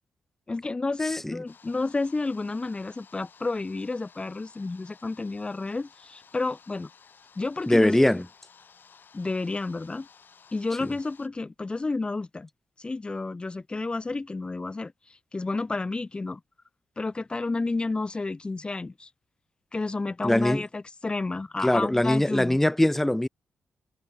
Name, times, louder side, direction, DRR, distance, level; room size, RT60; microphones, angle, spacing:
voice 1, 0.5-6.9 7.4-8.2 9.1-10.1 10.5-12.5 12.8-14.9 15.3-16.4 17.0-19.1 19.7-22.6, left 3 dB, 20° left, 1.0 m, -31 dB
sound 1, 1.5-11.3, left 6 dB, 45° left, 3.4 m, -56 dB
voice 2, 7.7-8.2 20.2-20.6 21.6-23.3, left 1 dB, 5° left, 0.6 m, -22 dB
cardioid pair, 120°, 5 cm